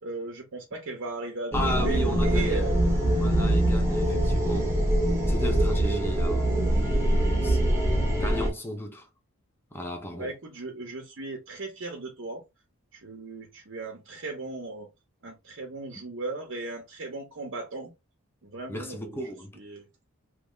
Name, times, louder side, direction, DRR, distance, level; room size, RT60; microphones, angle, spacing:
voice 1, 0.0-2.8 4.0-4.2 10.2-12.4 12.9-14.9 15.2-17.9 18.4-19.2 19.6-19.8, right 2 dB, 55° right, 0.7 m, -37 dB
voice 2, 1.5-2.6 3.2-4.7 5.3-6.5 7.4-7.6 8.1-9.1 9.7-10.3 18.7-19.5, equal, 10° left, 0.5 m, -34 dB
sound 1, 1.5-8.5, right 1 dB, 10° right, 0.9 m, -24 dB
3.1 x 2.1 x 3.6 m
head